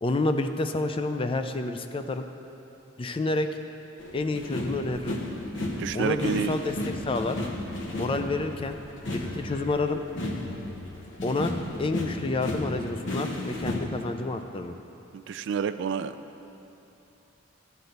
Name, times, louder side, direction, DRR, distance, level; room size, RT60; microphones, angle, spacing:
voice 1, 0.0-2.3 3.0-3.5 4.1-5.2 5.9-6.7 7.1-7.4 7.9-8.8 9.1-10.0 11.2-11.5 11.8-14.7, left 2 dB, 25° left, 7 dB, 0.4 m, -29 dB
sound 1, 4.0-13.8, left 1 dB, 70° left, 1.0 m, -34 dB
voice 2, 5.8-6.6 15.1-16.2, right 7 dB, 60° right, 12 dB, 0.3 m, -29 dB
11.5 x 4.0 x 7.9 m, 2.9 s
head